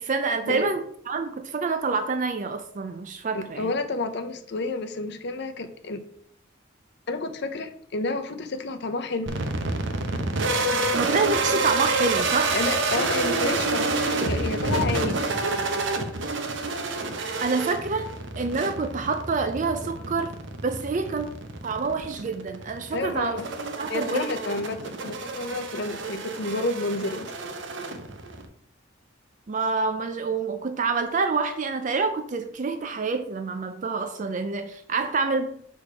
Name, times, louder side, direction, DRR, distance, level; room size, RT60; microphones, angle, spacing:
voice 1, 0.0-3.7 10.9-12.6 17.4-18.1 18.4-20.3 20.6-21.3 21.6-23.4 23.8-24.3 29.5-35.5, right 4 dB, 40° right, 8 dB, 0.4 m, -27 dB
voice 2, 3.3-6.0 7.1-9.3 12.5-15.4 22.9-23.5 23.9-27.3, left 3 dB, 55° left, 7 dB, 0.7 m, -30 dB
sound 1, 9.3-28.5, right 3 dB, 65° right, 0.8 m, -28 dB
6.4 x 3.5 x 4.9 m, 0.64 s
head